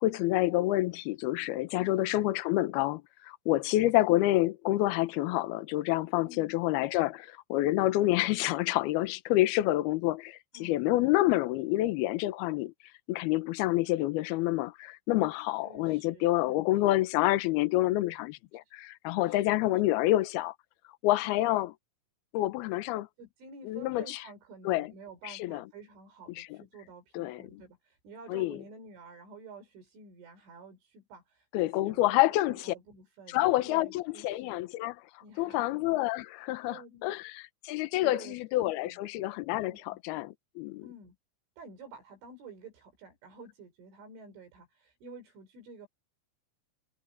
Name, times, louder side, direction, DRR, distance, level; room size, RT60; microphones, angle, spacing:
voice 1, 0.0-12.7 13.1-20.5 21.0-21.7 22.3-23.1 23.7-24.2 24.7-24.9 25.4-25.6 26.4-26.5 27.1-27.4 28.3-28.6 31.5-32.7 33.3-35.0 35.4-40.8, left 16 dB, 85° left, 2.2 m, -28 dB
voice 2, 1.8-2.1 4.1-4.2 6.2-6.5 10.5-10.9 15.6-16.9 19.3-20.1 21.2-21.4 23.2-34.5 35.2-35.7 36.7-37.2 38.0-38.4 38.9-39.0 39.7-40.0 40.8-41.2 41.6-45.9, right 3 dB, 70° right, 7.6 m, -50 dB
omnidirectional pair, 5.8 m